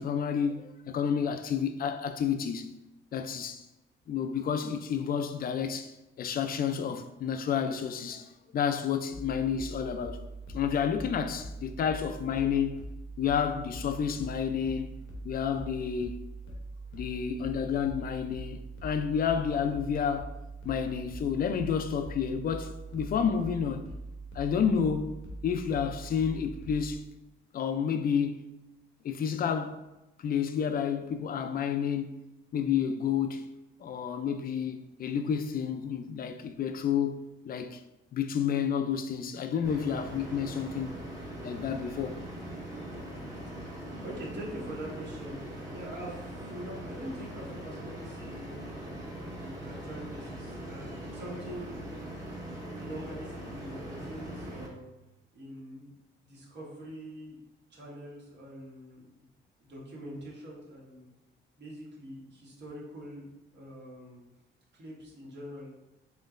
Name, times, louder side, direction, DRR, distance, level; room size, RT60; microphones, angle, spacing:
voice 1, 0.0-2.7 3.1-3.6 4.1-10.2 10.5-12.8 13.2-14.9 15.2-16.3 16.9-20.3 20.6-23.9 24.3-25.2 25.4-27.0 27.5-28.4 29.0-29.8 30.2-32.2 32.5-33.5 33.8-37.8 38.1-41.0 41.4-42.2, left 7 dB, 45° left, 0.4 m, -30 dB
sound 1, 9.1-27.0, right 2 dB, 90° left, 0.9 m, -42 dB
sound 2, 39.6-54.7, right 1 dB, 15° right, 1.4 m, -41 dB
voice 2, 44.0-45.4 45.7-48.6 49.3-51.9 52.6-54.9 55.3-55.9 56.2-57.4 57.7-59.3 59.6-61.0 61.6-63.2 63.5-64.2 64.7-65.7, right 1 dB, 60° right, 1.5 m, -44 dB
4.2 x 3.1 x 2.5 m
cardioid pair, 90°, 20 cm